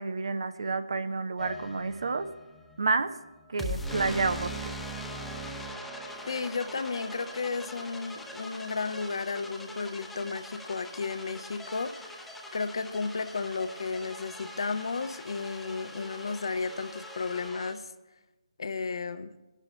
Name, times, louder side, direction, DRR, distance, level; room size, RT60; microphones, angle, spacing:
voice 1, 0.0-2.3 2.8-3.1 3.5-4.7, right 4 dB, 55° right, 11 dB, 0.7 m, -29 dB
sound 1, 1.4-17.7, equal, ahead, 0.8 m, -42 dB
sound 2, 6.1-17.5, left 2 dB, 25° right, 0.9 m, -59 dB
voice 2, 6.3-12.2 12.5-17.9 18.6-19.3, left 4 dB, 55° left, 10 dB, 0.7 m, -33 dB
27.0 x 11.5 x 2.2 m, 1.1 s
figure-of-eight pair, 145°, 3 cm